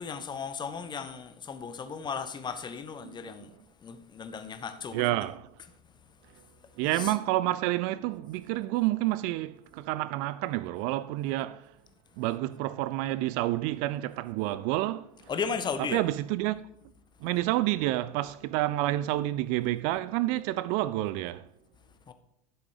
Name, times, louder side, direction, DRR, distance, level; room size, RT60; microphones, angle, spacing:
voice 1, 0.0-3.5 3.8-5.0 6.9-7.1 15.3-16.0 22.1-22.2, left 6 dB, 20° left, 1.0 m, -35 dB
voice 2, 4.9-5.5 6.8-11.7 12.2-15.1 15.8-16.6 17.2-21.4, right 16 dB, 40° right, 0.4 m, -29 dB
11.5 x 7.0 x 4.9 m
figure-of-eight pair, 80°, 21 cm